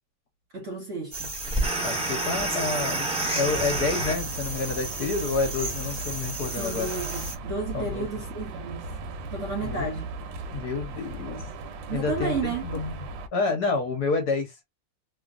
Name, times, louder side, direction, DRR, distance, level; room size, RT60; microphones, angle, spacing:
voice 1, 0.5-1.3 6.6-8.8 9.3-10.1 11.9-12.7, right 4 dB, 50° right, 1.0 m, -32 dB
sound 1, 1.1-7.3, right 2 dB, 20° right, 0.9 m, -30 dB
voice 2, 1.8-6.9 7.7-8.1 9.5-9.9 10.5-11.4 11.9-12.9 13.3-14.6, left 4 dB, 60° left, 1.2 m, -29 dB
sound 2, 3.4-13.3, right 1 dB, 70° right, 1.3 m, -37 dB
3.2 x 2.4 x 2.4 m
omnidirectional pair, 2.3 m